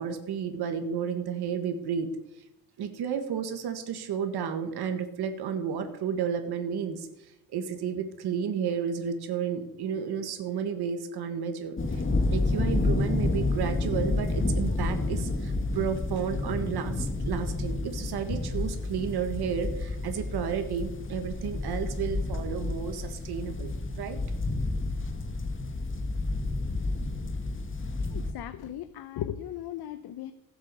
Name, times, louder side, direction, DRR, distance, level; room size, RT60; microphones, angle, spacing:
voice 1, 0.0-2.1 2.8-12.0 12.3-24.2, right 7 dB, 90° right, 7 dB, 1.6 m, -32 dB
sound 1, 11.8-28.3, left 2 dB, 30° left, 1.6 m, -30 dB
voice 2, 28.1-30.3, left 11 dB, 80° left, 11 dB, 0.8 m, -37 dB
16.0 x 8.1 x 6.8 m, 0.85 s
cardioid pair, 135°, 37 cm